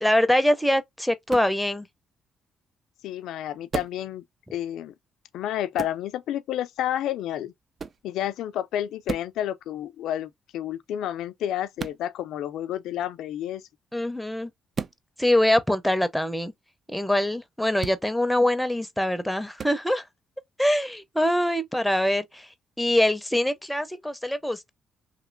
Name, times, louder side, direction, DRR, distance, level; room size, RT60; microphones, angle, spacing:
voice 1, 0.0-1.9 13.9-14.5 15.2-16.5 16.9-20.0 20.6-22.5 22.8-24.7, left 1 dB, 5° left, 0.6 m, -24 dB
sound 1, 1.3-1.6 3.7-4.0 5.8-6.0 7.8-8.0 9.0-9.4 11.8-12.0 14.7-15.0 17.8-18.0 19.6-19.8, right 6 dB, 45° right, 0.3 m, -33 dB
voice 2, 3.0-4.2 4.5-4.9 5.3-7.5 8.0-13.6, left 11 dB, 85° left, 0.4 m, -30 dB
3.0 x 2.8 x 2.5 m
cardioid pair, 90°, 0 cm